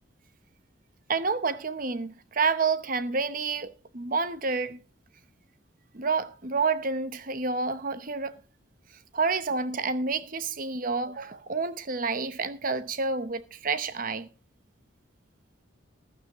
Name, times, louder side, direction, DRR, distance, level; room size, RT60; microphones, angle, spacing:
voice 1, 1.1-4.8 5.9-8.4 9.1-14.3, right 4 dB, 45° right, 0.8 m, -29 dB
15.0 x 12.5 x 3.0 m
head